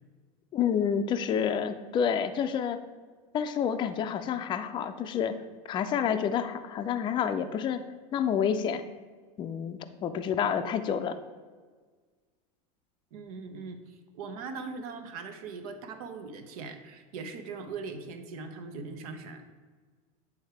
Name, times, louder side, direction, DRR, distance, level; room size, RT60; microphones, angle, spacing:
voice 1, 0.5-2.8 3.3-5.4 5.7-7.8 8.1-8.8 9.4-11.2, left 8 dB, 25° left, 8 dB, 0.4 m, -29 dB
voice 2, 13.1-19.4, right 4 dB, 85° right, 7 dB, 0.9 m, -40 dB
8.6 x 3.5 x 4.6 m, 1.5 s
supercardioid pair, 135°, 18 cm